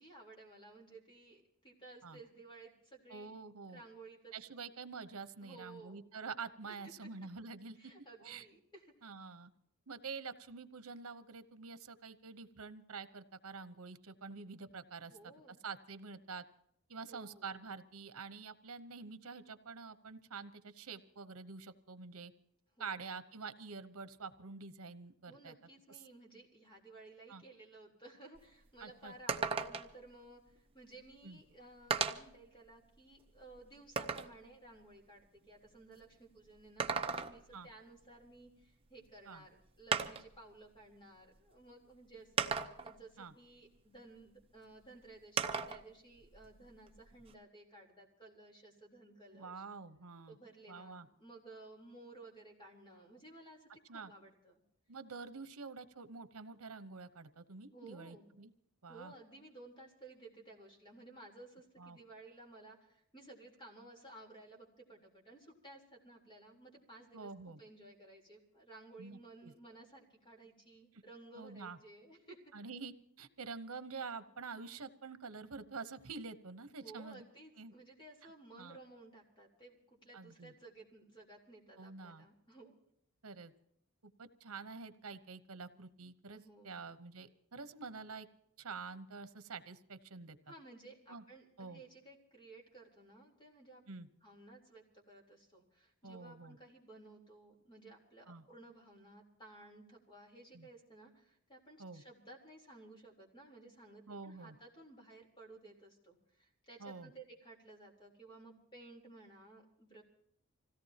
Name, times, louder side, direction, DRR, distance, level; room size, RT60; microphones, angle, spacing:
voice 1, 0.0-3.3 3.7-4.3 5.4-6.0 6.8-7.1 7.8-8.9 15.0-15.6 17.1-17.5 22.8-23.0 25.3-49.6 50.3-54.6 57.7-58.3 58.9-72.5 76.8-82.7 86.3-86.8 90.4-93.8 94.2-110.0, right 2 dB, 20° left, 0 dB, 3.7 m, -56 dB
voice 2, 3.1-3.8 4.3-7.9 8.2-8.4 9.0-9.5 9.9-15.3 15.6-16.4 16.9-22.3 22.8-25.5 27.3-27.4 28.8-29.4 31.2-31.4 37.5-37.7 39.3-39.4 43.2-43.3 49.3-50.4 50.7-51.1 53.9-54.1 54.9-58.5 58.8-59.1 61.8-62.0 67.1-67.6 69.0-69.5 71.4-71.8 72.5-77.2 77.6-77.7 78.5-78.8 80.1-80.5 81.8-82.3 83.2-83.5 84.2-88.3 88.6-90.4 91.1-91.2 91.6-91.8 93.9-94.1 96.0-96.6 98.3-98.4 100.5-100.7 101.8-102.0 104.1-104.6 106.8-107.1, right 4 dB, 80° right, 12 dB, 1.0 m, -47 dB
sound 1, 28.4-28.5 28.8-28.9 29.3-30.0 31.1-31.2 31.9-32.4 33.0-34.4 36.6-37.6 39.1-39.2 39.9-40.4 41.4-41.5 42.4-43.0 45.4-45.8 46.2-47.3, right 5 dB, 25° right, 0.8 m, -36 dB
26.0 x 17.0 x 2.9 m, 0.73 s
head